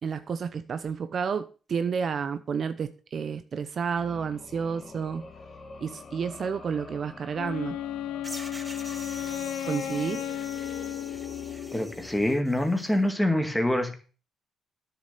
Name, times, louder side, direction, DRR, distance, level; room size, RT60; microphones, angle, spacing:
voice 1, 0.0-5.3 5.8-7.8 9.6-10.3, right 6 dB, 50° right, 0.8 m, -30 dB
sound 1, 3.8-12.9, left 4 dB, 35° left, 1.8 m, -46 dB
Wind instrument woodwind instrument, 7.3-12.1, left 11 dB, 90° left, 0.6 m, -34 dB
sound 2, 8.2-13.0, right 1 dB, 10° right, 1.2 m, -45 dB
voice 2, 11.7-14.0, left 1 dB, 5° left, 2.1 m, -25 dB
9.7 x 7.0 x 6.8 m
cardioid pair, 90°, 0 cm